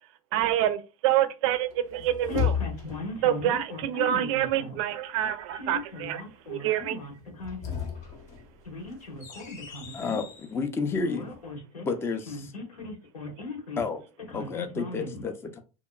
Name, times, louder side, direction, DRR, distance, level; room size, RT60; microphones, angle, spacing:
voice 1, 0.3-2.6 3.2-6.2 6.5-7.0, right 12 dB, 60° right, 0.4 m, -27 dB
sound 1, 1.7-3.2 7.3-10.5, left 8 dB, 45° left, 0.8 m, -34 dB
voice 2, 2.2-4.8 5.5-7.9 8.6-10.2 11.0-11.9 12.3-13.9 14.3-15.3, left 3 dB, 90° left, 1.2 m, -38 dB
voice 3, 9.9-10.2 10.5-11.3 11.8-12.4 13.8-14.0 14.3-15.6, left 4 dB, 15° left, 0.4 m, -30 dB
2.7 x 2.2 x 2.2 m
hypercardioid pair, 100°, 18 cm